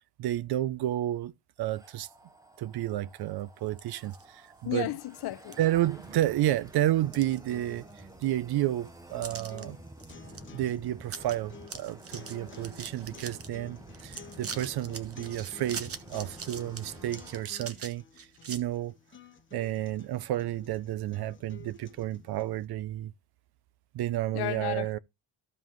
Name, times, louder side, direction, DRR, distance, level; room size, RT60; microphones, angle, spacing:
voice 1, 0.2-1.3 1.6-2.1 2.6-4.9 5.6-7.8 8.2-9.8 10.5-18.9 19.5-23.1 23.9-25.0, right 13 dB, 55° right, 0.6 m, -31 dB
sound 1, 1.6-17.4, right 2 dB, 10° right, 0.5 m, -50 dB
sound 2, 3.7-4.2 4.7-4.8 5.5-5.6 6.0-6.5 6.9-7.9 8.2-8.3 9.2-9.6 10.0-10.4 10.7-10.8 11.0-11.3 11.6-13.5 13.9-18.6, right 6 dB, 30° right, 0.9 m, -42 dB
voice 2, 4.6-5.6 24.3-25.0, left 16 dB, 55° left, 0.6 m, -33 dB
sound 3, 6.6-22.7, left 6 dB, 25° left, 1.0 m, -53 dB
14.5 x 5.5 x 3.0 m
cardioid pair, 175°, 47 cm